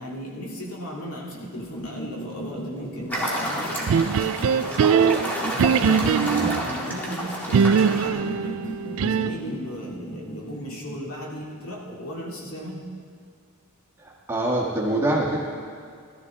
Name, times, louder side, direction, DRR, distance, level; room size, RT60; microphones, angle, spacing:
voice 1, 0.0-5.1 5.5-6.3 6.6-12.8, equal, 70° left, -3 dB, 2.6 m, -36 dB
sound 1, 1.3-11.1, right 1 dB, 25° left, 1.1 m, -37 dB
sound 2, 3.1-8.1, equal, 10° left, 1.9 m, -30 dB
sound 3, 3.9-6.7 7.5-9.5, right 7 dB, 65° right, 0.3 m, -21 dB
voice 2, 6.3-6.6 14.0-15.4, right 1 dB, 10° right, -4 dB, 1.8 m, -25 dB
18.0 x 12.5 x 3.7 m, 2.2 s
head